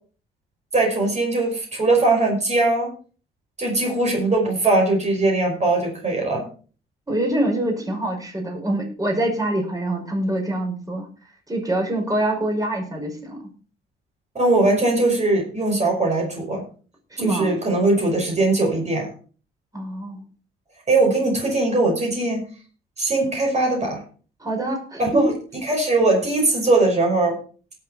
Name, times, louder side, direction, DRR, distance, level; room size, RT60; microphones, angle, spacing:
voice 1, 0.7-2.9 3.6-6.4 14.4-16.6 17.2-19.1 20.9-22.4 23.0-24.0 25.0-25.3 25.6-27.4, right 2 dB, 35° right, 0 dB, 5.5 m, -20 dB
voice 2, 7.1-11.1 11.5-13.5 17.1-17.5 19.7-20.2 24.4-25.3, right 1 dB, 20° right, 1 dB, 5.6 m, -25 dB
18.0 x 7.3 x 4.3 m, 0.39 s
cardioid pair, 90°, 20 cm